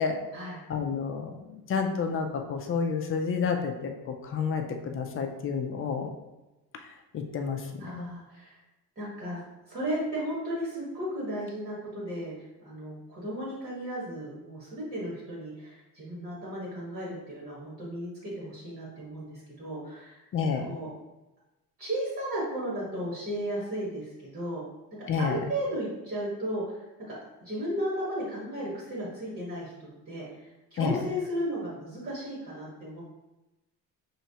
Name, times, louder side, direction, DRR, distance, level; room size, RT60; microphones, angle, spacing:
voice 1, 0.7-6.1 7.1-7.6 8.0-8.1 20.3-20.7 25.1-25.4 30.8-31.0, left 5 dB, 40° left, 4 dB, 0.4 m, -30 dB
voice 2, 7.8-8.6 9.0-9.4 9.7-12.3 12.6-20.2 20.6-20.9 21.8-24.6 25.2-26.8 27.1-27.2 27.4-30.2 30.7-33.0, equal, 40° right, -6 dB, 1.4 m, -34 dB
5.7 x 3.2 x 2.8 m, 1.0 s
cardioid pair, 175°, 35 cm